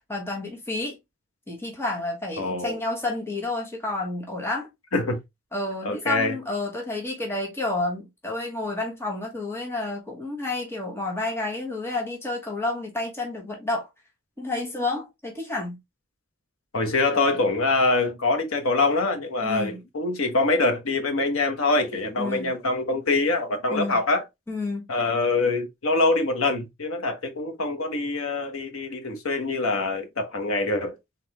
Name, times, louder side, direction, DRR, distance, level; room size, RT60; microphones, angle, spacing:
voice 1, 0.1-1.0 1.5-4.7 5.5-13.9 14.4-15.8 19.4-19.8 22.2-22.5 23.7-24.0 24.5-24.9, left 2 dB, 10° left, 1.3 m, -30 dB
voice 2, 2.4-2.8 4.9-5.2 5.8-6.4 16.7-24.2 24.9-31.0, left 3 dB, 75° left, 1.2 m, -24 dB
4.2 x 3.9 x 2.9 m
head